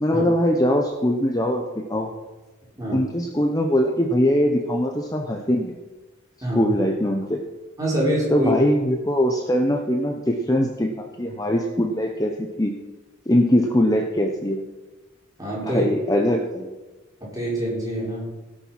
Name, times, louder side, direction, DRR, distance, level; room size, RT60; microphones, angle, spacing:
voice 1, 0.0-2.1 2.9-5.7 6.5-7.4 8.3-12.8 13.3-14.6 15.6-16.7, equal, 15° left, 2 dB, 0.9 m, -22 dB
voice 2, 6.4-6.8 7.8-8.5 15.4-15.8 17.2-18.3, right 1 dB, 15° right, -5 dB, 4.9 m, -25 dB
17.5 x 7.2 x 5.9 m, 1.1 s
head